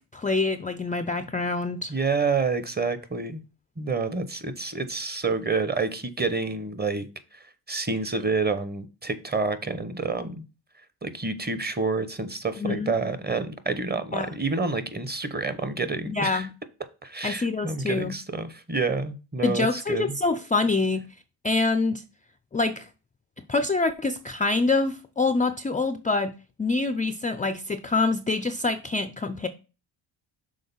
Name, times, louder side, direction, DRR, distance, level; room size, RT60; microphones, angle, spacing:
voice 1, 0.1-1.9 12.6-12.9 14.1-14.3 16.1-16.5 17.2-18.1 19.4-21.0 21.4-22.0 22.5-22.9 23.5-26.3 26.6-29.5, left 3 dB, 15° left, 0.4 m, -25 dB
voice 2, 1.9-3.4 3.8-7.1 7.3-10.4 11.0-16.5 17.0-20.2, right 4 dB, 20° right, 0.9 m, -28 dB
6.4 x 3.8 x 5.5 m
cardioid pair, 75°, 50 cm